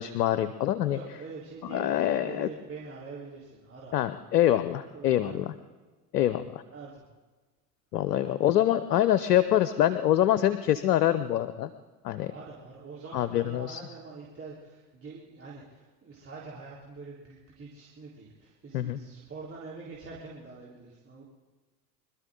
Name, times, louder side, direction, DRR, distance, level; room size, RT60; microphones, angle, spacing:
voice 1, 0.0-1.0 1.7-2.5 3.9-5.5 6.1-6.6 7.9-11.7 12.0-12.3 13.1-13.8 18.7-19.0, left 12 dB, 80° left, 13 dB, 0.8 m, -25 dB
voice 2, 0.8-4.0 4.9-5.5 6.7-7.0 8.1-8.3 9.1-9.2 12.3-21.2, right 4 dB, 30° right, -5 dB, 3.9 m, -45 dB
25.5 x 13.0 x 3.8 m, 1.3 s
hypercardioid pair, 70°, 48 cm